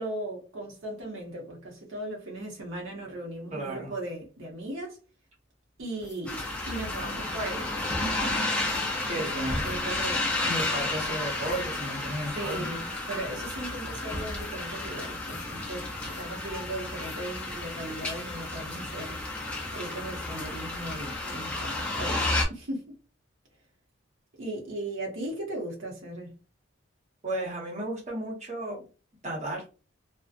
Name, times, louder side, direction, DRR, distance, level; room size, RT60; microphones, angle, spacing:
voice 1, 0.0-5.0 5.8-7.7 8.0-8.4 8.8-10.4 12.3-19.2 19.7-22.9 24.4-26.3, right 1 dB, 80° right, 0.8 m, -37 dB
voice 2, 3.5-3.9 9.1-9.8 10.4-12.7 27.2-28.8 29.2-29.6, right 1 dB, 35° right, 0.9 m, -33 dB
sound 1, 5.9-6.4 6.9-7.2 7.7-8.2 8.6-9.0 9.6-10.8 11.4-11.8 12.1-12.2 12.4-12.6 13.4-13.6 14.3-14.7 15.2-15.6 16.0-16.2 16.9-17.6 17.9-18.3, left 2 dB, 65° left, 0.8 m, -49 dB
sound 2, 6.3-22.4, left 2 dB, 5° left, 0.4 m, -32 dB
2.6 x 2.1 x 2.4 m
head